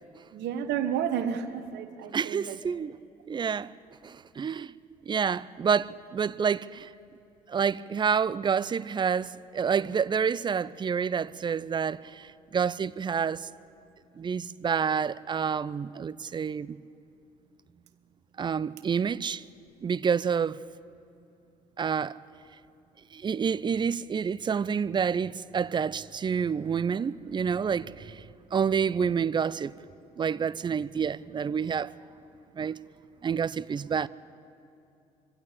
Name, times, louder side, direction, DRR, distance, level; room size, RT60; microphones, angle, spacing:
voice 1, 0.3-2.6, right 8 dB, 55° right, 1.4 m, -31 dB
voice 2, 2.1-3.0 3.3-3.7 4.0-4.7 5.1-6.9 7.5-13.5 14.2-16.8 18.4-19.4 19.8-20.6 21.8-22.2 23.1-28.2 28.5-29.7 30.2-31.9 32.6-32.8 33.2-34.1, right 6 dB, 20° right, 0.5 m, -28 dB
24.5 x 16.0 x 8.7 m
figure-of-eight pair, 55°, 21 cm